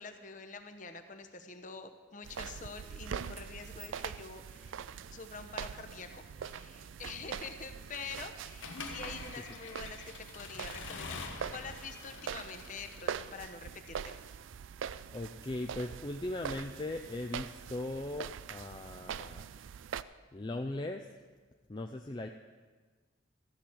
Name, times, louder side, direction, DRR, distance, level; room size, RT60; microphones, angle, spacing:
voice 1, 0.0-4.8 5.1-14.4, left 4 dB, 40° left, 7 dB, 0.9 m, -46 dB
sound 1, 2.2-20.0, right 7 dB, 80° right, 0.4 m, -43 dB
sound 2, 3.6-9.7, right 4 dB, 25° right, 1.0 m, -60 dB
Accelerating revving vroom / Mechanisms, 8.6-13.5, left 4 dB, 75° left, 1.2 m, -45 dB
voice 2, 15.1-19.5 20.3-21.1 21.7-22.3, left 2 dB, 25° left, 4 dB, 0.4 m, -39 dB
14.0 x 6.1 x 8.6 m, 1.4 s
head